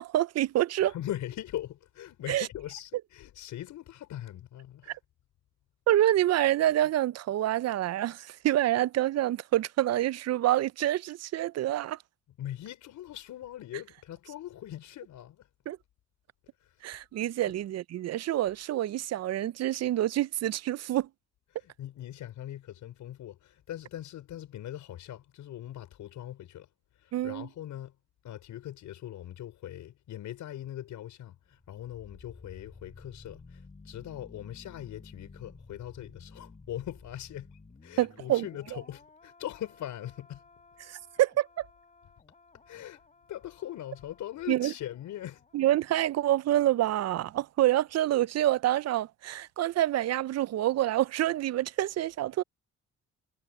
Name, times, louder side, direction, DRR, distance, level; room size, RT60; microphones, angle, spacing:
voice 1, 0.0-0.9 2.3-2.4 5.9-12.0 15.7-15.8 16.8-21.1 27.1-27.5 38.0-38.5 40.8-41.7 44.5-44.7 45.5-52.4, right 13 dB, 60° right, 0.5 m, -27 dB
voice 2, 0.8-5.0 12.4-15.5 16.6-16.8 21.5-26.7 27.0-28.0 28.2-40.4 42.7-43.0 43.3-45.4, left 12 dB, 80° left, 5.3 m, -41 dB
sound 1, 31.5-46.4 46.7-46.9, left 3 dB, 25° left, 4.3 m, -54 dB
cardioid pair, 90°, 30 cm